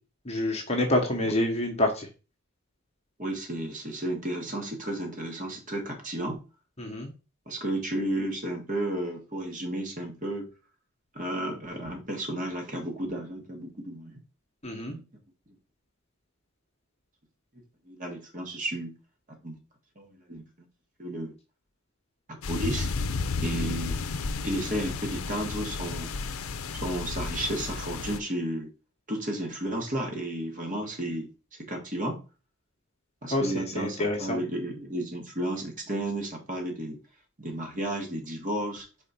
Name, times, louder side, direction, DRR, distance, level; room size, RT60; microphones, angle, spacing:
voice 1, 0.3-2.1 6.8-7.1 14.6-15.0 33.3-34.4, left 1 dB, 30° left, 1 dB, 1.0 m, -27 dB
voice 2, 3.2-6.4 7.5-10.5 11.2-14.2 14.9-15.0 17.9-18.9 19.3-19.6 20.0-20.4 21.0-21.3 22.3-22.9 23.4-24.0 24.4-26.1 26.8-28.7 29.1-31.3 31.6-32.2 33.2-37.0 37.4-38.9, right 1 dB, 35° right, 2 dB, 1.6 m, -33 dB
sound 1, 22.4-28.2, left 4 dB, 70° left, 0.6 m, -32 dB
4.4 x 4.1 x 5.6 m, 0.33 s
head